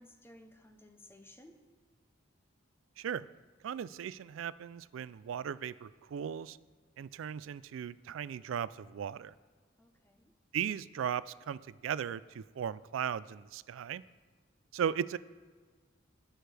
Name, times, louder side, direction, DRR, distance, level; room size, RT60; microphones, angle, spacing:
voice 1, 0.0-1.6 9.8-10.3, left 1 dB, 10° left, 5 dB, 0.8 m, -57 dB
voice 2, 3.0-3.3 3.6-6.6 7.0-9.3 10.5-14.0 14.7-15.2, right 8 dB, 80° right, 18 dB, 0.3 m, -37 dB
19.0 x 6.4 x 3.4 m, 1.5 s
head